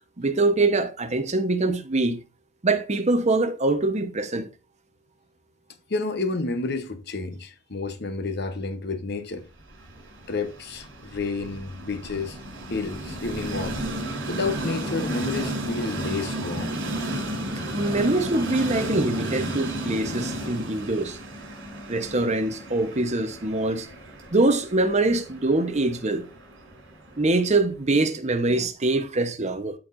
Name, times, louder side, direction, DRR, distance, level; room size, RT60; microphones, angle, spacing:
voice 1, 0.2-2.2 2.6-4.5 17.7-21.2 21.9-23.9 24.3-26.3 27.2-29.7, right 2 dB, 35° right, 1.0 m, -24 dB
voice 2, 5.9-9.5 10.3-12.4 12.7-13.8 14.3-16.7 20.4-20.5 28.5-28.7, left 3 dB, 60° left, 1.0 m, -30 dB
Train, 9.6-27.7, right 1 dB, 75° right, 3.7 m, -33 dB
13.5 x 4.6 x 2.6 m
head